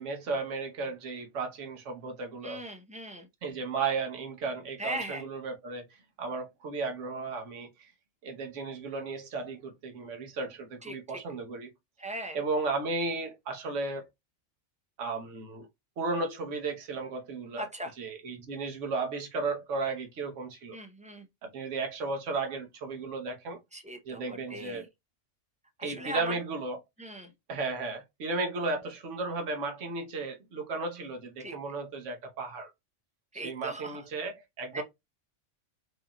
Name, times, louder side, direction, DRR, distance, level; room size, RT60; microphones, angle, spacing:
voice 1, 0.0-2.6 3.4-5.8 6.2-7.9 8.2-11.7 12.3-14.0 15.0-15.7 16.0-17.7 18.0-20.8 21.4-23.6 24.0-24.9 25.8-26.8 27.5-32.7 33.3-34.8, right 3 dB, 80° right, 1.3 m, -34 dB
voice 2, 2.4-3.3 4.8-5.2 10.8-11.2 12.0-12.4 17.6-17.9 20.7-21.3 23.7-24.9 25.8-26.4 27.0-27.3 31.4-31.5 33.3-34.0 34.7-34.8, right 1 dB, 10° right, 0.5 m, -39 dB
4.8 x 2.6 x 2.9 m
omnidirectional pair, 1.2 m